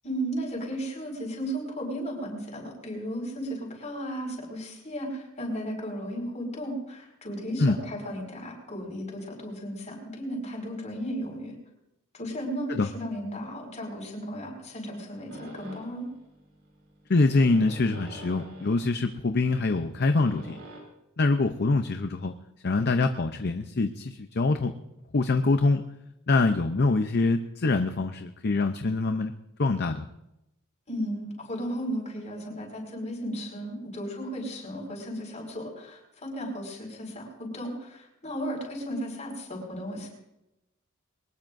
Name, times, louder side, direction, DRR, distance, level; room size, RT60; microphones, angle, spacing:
voice 1, 0.0-11.5 12.1-16.0 30.9-40.1, equal, 35° left, 0 dB, 5.3 m, -35 dB
sound 1, 15.3-20.8, right 1 dB, 65° right, 5.2 m, -47 dB
voice 2, 17.1-20.6 21.2-22.3 22.6-24.7 25.1-25.8 26.3-29.3 29.6-30.1, left 3 dB, 50° left, 7 dB, 0.7 m, -24 dB
23.0 x 19.5 x 2.6 m, 0.90 s
head